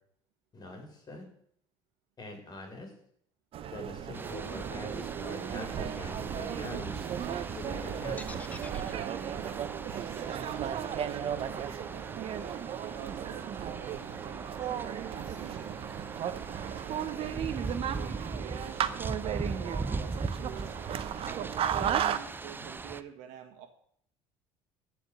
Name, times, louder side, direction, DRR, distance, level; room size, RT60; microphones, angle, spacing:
voice 1, 0.5-1.2 2.2-2.9 3.7-7.0 7.5-8.5, left 2 dB, 35° left, 3 dB, 4.2 m, -43 dB
sound 1, 3.5-22.2, right 9 dB, 50° right, 0.9 m, -35 dB
sound 2, 4.1-23.0, right 3 dB, 15° right, 0.6 m, -41 dB
sound 3, 8.2-12.2, left 2 dB, 10° left, 1.0 m, -49 dB
voice 2, 10.1-15.8 16.6-18.8 19.1-20.8 21.3-23.7, right 9 dB, 80° right, 7 dB, 1.6 m, -47 dB
14.5 x 5.2 x 7.8 m, 0.66 s
supercardioid pair, 90°, 12 cm